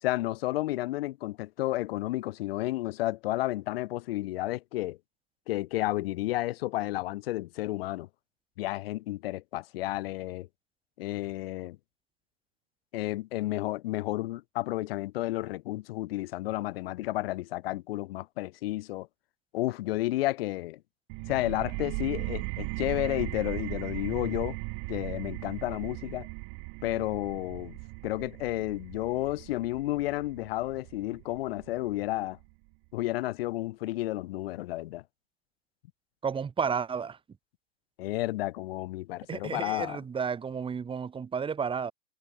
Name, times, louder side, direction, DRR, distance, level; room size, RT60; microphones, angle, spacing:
voice 1, 0.0-5.0 5.5-8.1 8.6-10.5 11.0-11.8 12.9-19.1 19.5-20.8 21.3-24.6 24.9-26.3 26.8-27.8 28.0-32.4 32.9-35.0 38.0-40.0, left 17 dB, 50° left, 2.7 m, -31 dB
sound 1, 21.1-32.5, right 40 dB or more, 40° right, 3.7 m, -38 dB
voice 2, 36.2-37.2 39.3-41.9, right 6 dB, 15° right, 3.1 m, -32 dB
hypercardioid pair, 115°, 37 cm